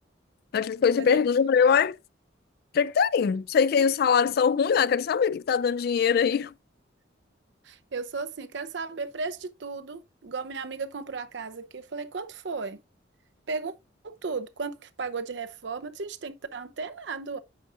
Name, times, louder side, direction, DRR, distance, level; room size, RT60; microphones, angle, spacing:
voice 1, 0.5-2.0 2.7-6.5, left 6 dB, 55° left, 0.3 m, -22 dB
voice 2, 7.6-12.8 13.5-13.7 14.0-17.4, right 4 dB, 70° right, 0.6 m, -35 dB
8.8 x 4.9 x 2.5 m
head